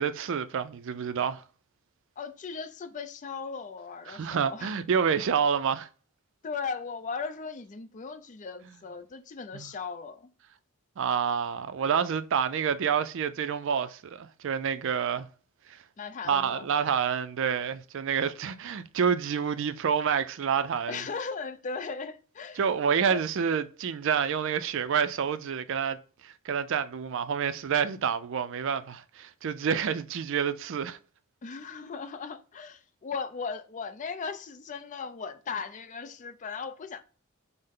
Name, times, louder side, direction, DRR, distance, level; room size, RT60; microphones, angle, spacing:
voice 1, 0.0-1.4 4.1-5.9 9.5-9.7 11.0-15.3 16.3-21.0 22.6-26.0 26.2-31.0, right 7 dB, 60° right, 0.4 m, -28 dB
voice 2, 2.2-4.8 6.4-10.3 16.0-16.6 20.9-22.6 23.0-23.2 31.4-37.0, left 5 dB, 35° left, 0.4 m, -37 dB
5.5 x 2.0 x 3.6 m
head